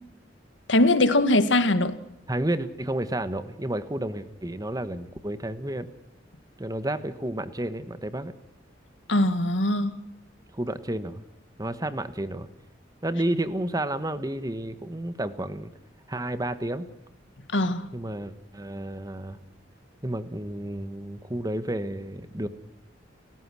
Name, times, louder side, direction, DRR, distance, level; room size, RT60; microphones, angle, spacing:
voice 1, 0.7-2.0 9.1-10.0 17.5-17.9, left 1 dB, 85° left, 1.9 m, -21 dB
voice 2, 2.3-5.9 6.6-8.3 10.5-11.2 11.6-12.5 13.0-15.7 16.1-16.9 17.9-19.4 20.0-22.5, right 1 dB, 20° right, 1.3 m, -31 dB
29.5 x 15.5 x 6.3 m
head